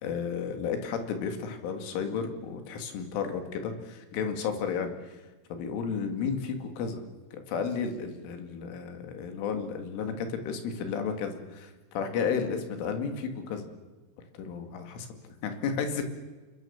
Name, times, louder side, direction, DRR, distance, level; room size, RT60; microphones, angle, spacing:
voice 1, 0.0-5.1 5.5-7.0 7.5-13.7 14.3-16.0, left 6 dB, 70° left, 6 dB, 4.8 m, -33 dB
29.0 x 22.0 x 7.3 m, 1.2 s
omnidirectional pair, 6.0 m